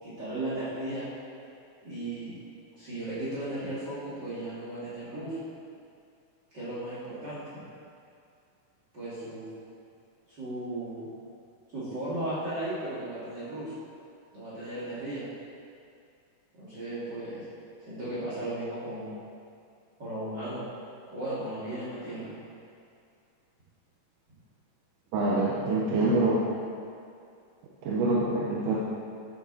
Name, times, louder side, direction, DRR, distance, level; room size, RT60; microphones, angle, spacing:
voice 1, 0.0-1.1 1.8-2.3 2.8-5.4 6.5-7.4 8.9-9.5 10.3-11.1 11.7-13.7 14.3-15.3 16.5-17.5 17.8-19.1 20.0-20.7 21.1-22.3 25.7-26.2, right 1 dB, 35° right, -11 dB, 2.9 m, -36 dB
voice 2, 25.1-26.4 27.9-28.8, right 2 dB, 70° right, -5 dB, 2.4 m, -25 dB
14.0 x 6.9 x 4.2 m, 2.4 s
omnidirectional pair, 4.0 m